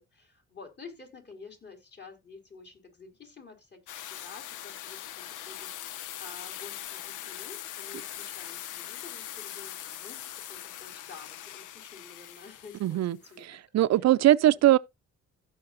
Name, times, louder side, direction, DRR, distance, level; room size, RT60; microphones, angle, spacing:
voice 1, 0.0-3.8 4.0-13.6 14.4-14.6, left 4 dB, 35° left, 4.1 m, -50 dB
sound 1, 3.9-13.3, left 12 dB, 85° left, 0.8 m, -41 dB
voice 2, 12.8-13.2 13.7-14.8, right 13 dB, 60° right, 0.6 m, -20 dB
16.0 x 5.8 x 2.6 m
cardioid pair, 90°, 30 cm